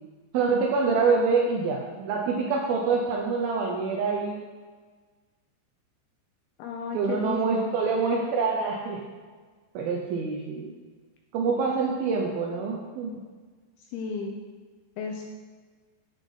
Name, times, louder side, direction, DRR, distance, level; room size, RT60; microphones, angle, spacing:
voice 1, 0.3-4.4 6.9-9.0 9.7-10.7 11.3-13.1, right 4 dB, 85° right, 0 dB, 2.1 m, -26 dB
voice 2, 6.6-7.8 13.8-14.3 15.0-15.3, left 5 dB, 85° left, 1 dB, 2.3 m, -34 dB
9.1 x 7.8 x 3.6 m, 1.4 s
omnidirectional pair, 5.2 m